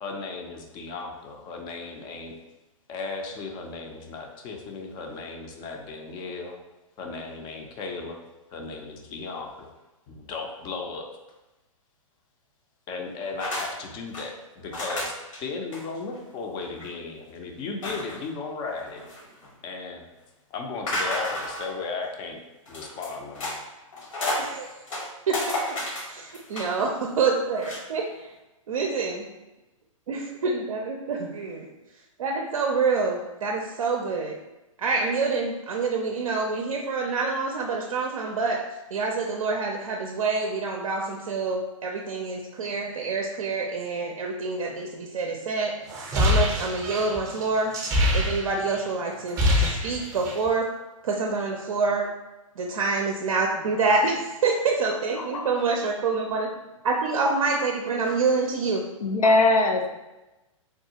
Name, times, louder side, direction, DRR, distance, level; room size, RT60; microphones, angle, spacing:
voice 1, 0.0-2.4 2.9-6.6 7.0-8.2 8.5-9.7 10.1-11.0 12.9-15.1 15.4-19.0 19.6-20.0 20.5-22.4 22.7-23.6, left 4 dB, 25° left, 2 dB, 0.5 m, -35 dB
sound 1, 13.4-13.7 13.9-14.3 14.7-15.4 15.7-15.8 16.2-16.3 16.6-16.9 17.8-18.3 18.8-19.5 20.9-21.8 22.7-23.6 23.9-24.5 24.9-26.8 27.5-27.8, left 1 dB, 65° left, 1.1 m, -31 dB
voice 2, 24.4-24.7 25.3-25.6 26.1-28.0 28.7-29.3 30.1-30.2 30.6-31.7 32.2-34.4 34.8-38.6 38.9-45.8 46.2-47.7 48.1-50.7 51.0-52.1 52.6-56.5 56.8-58.8, right 4 dB, 70° right, 1 dB, 0.4 m, -26 dB
sound 2, 45.9-48.8 49.1-50.5, left 1 dB, 20° right, 0.6 m, -24 dB
voice 3, 54.9-55.5 59.0-59.9, left 2 dB, 85° left, 4 dB, 0.5 m, -22 dB
3.5 x 2.3 x 2.8 m, 1.0 s
hypercardioid pair, 125°, 18 cm